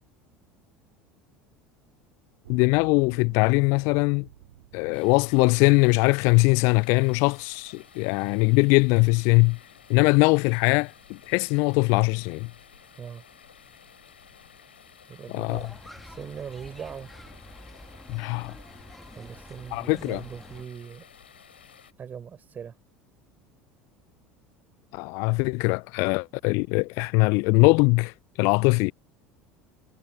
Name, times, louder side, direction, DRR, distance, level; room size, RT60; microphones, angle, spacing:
sound 1, 2.4-7.7 8.4-8.5, right 14 dB, 65° right, 3.7 m, -52 dB
voice 1, 2.5-4.3 4.7-9.6 9.9-12.5 15.3-15.6 18.1-18.5 19.7-20.2 24.9-28.9, left 31 dB, 50° left, 0.4 m, -21 dB
sound 2, 4.9-21.9, left 8 dB, 75° left, 3.2 m, -53 dB
voice 2, 15.1-15.7 16.0-17.1 19.1-21.0 22.0-22.8, right 7 dB, 30° right, 4.4 m, -40 dB
sound 3, 15.5-20.6, equal, ahead, 1.8 m, -47 dB
figure-of-eight pair, 70°, 6 cm